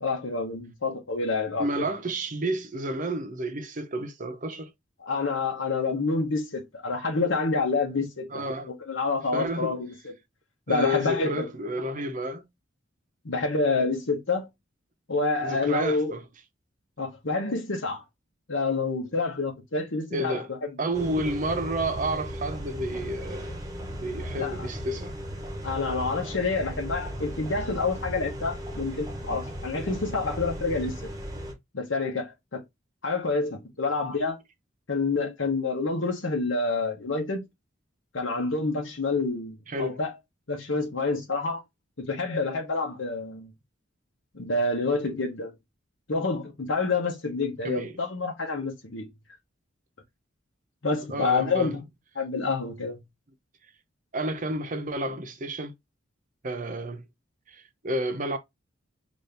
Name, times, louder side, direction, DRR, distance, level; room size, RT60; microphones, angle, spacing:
voice 1, 0.0-1.9 5.0-8.4 8.9-9.9 10.7-11.5 13.2-14.5 15.1-16.1 17.0-18.0 18.5-20.7 24.4-24.6 25.6-30.9 31.7-32.6 33.0-34.4 34.9-37.4 38.1-40.1 40.5-41.6 42.0-43.5 44.3-45.5 46.1-49.1 50.8-51.8 52.1-53.0, left 3 dB, 75° left, 1.0 m, -28 dB
voice 2, 1.6-4.7 8.3-8.7 9.3-9.8 10.7-12.5 15.4-16.2 20.1-20.5 20.8-25.2 39.7-40.0 47.6-48.0 51.1-51.8 54.1-55.7 56.4-57.1 57.5-58.4, right 1 dB, 40° right, 0.7 m, -31 dB
sound 1, 20.9-31.5, equal, 20° right, 1.0 m, -36 dB
4.1 x 2.6 x 3.3 m
head